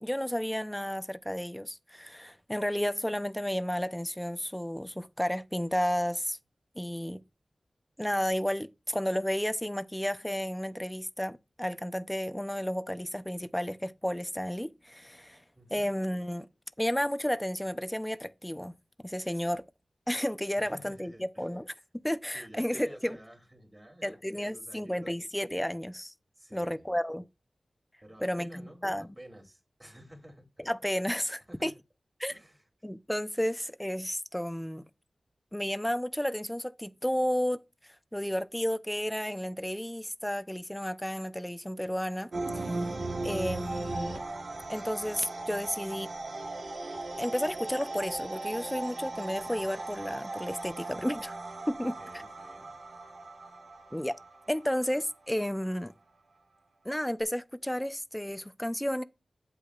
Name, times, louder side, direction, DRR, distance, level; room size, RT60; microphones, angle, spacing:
voice 1, 0.0-6.4 6.8-7.2 8.0-15.4 15.7-16.5 16.8-18.8 19.0-19.6 20.1-23.2 24.0-26.1 26.5-27.3 28.2-29.1 30.6-31.7 32.2-32.3 32.8-34.8 35.5-37.6 38.1-42.3 42.5-42.8 43.2-44.2 44.7-46.1 47.2-51.4 51.7-52.0 53.9-54.1 54.5-55.9 56.8-59.0, equal, 10° left, 0.7 m, -32 dB
voice 2, 15.5-15.9 20.6-21.5 22.3-25.1 26.3-26.9 28.0-30.7 31.5-31.7 32.3-32.6 51.8-52.8, equal, 20° right, 3.0 m, -51 dB
sound 1, 42.3-55.7, right 2 dB, 75° right, 1.4 m, -38 dB
8.4 x 8.2 x 2.5 m
cardioid pair, 50°, 0 cm